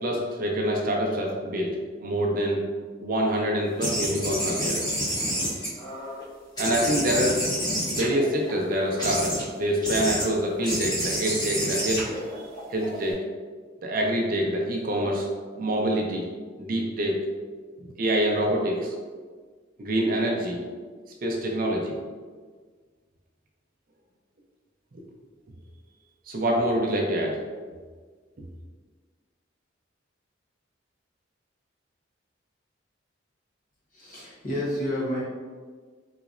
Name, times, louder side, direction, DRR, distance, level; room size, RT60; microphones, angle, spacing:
voice 1, 0.0-1.7 2.0-2.7 3.0-4.9 6.6-7.4 7.9-12.1 12.7-13.2 13.8-15.3 15.6-16.3 16.6-17.2 17.8-18.9 19.8-20.6 21.2-22.0 26.3-27.4, right 1 dB, 45° right, 0 dB, 0.5 m, -26 dB
sound 1, 3.8-6.2 6.6-8.5 9.0-9.4 9.8-10.2 10.6-13.1, equal, 20° left, 1.2 m, -29 dB
voice 2, 33.9-35.2, left 1 dB, 45° left, -7 dB, 1.0 m, -30 dB
3.9 x 3.0 x 2.4 m, 1.5 s
head